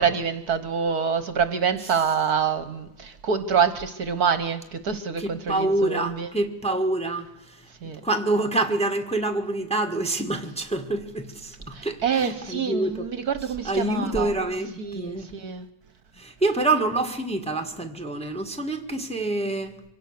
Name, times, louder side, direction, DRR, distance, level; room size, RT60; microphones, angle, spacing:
voice 1, 0.0-6.3 7.8-8.0 11.7-14.4 14.8-15.7, right 6 dB, 60° right, 1.4 m, -26 dB
voice 2, 5.2-7.7 8.0-13.1 13.6-15.3 16.2-19.7, right 2 dB, 5° left, 1.4 m, -26 dB
25.0 x 17.5 x 6.6 m
omnidirectional pair, 2.1 m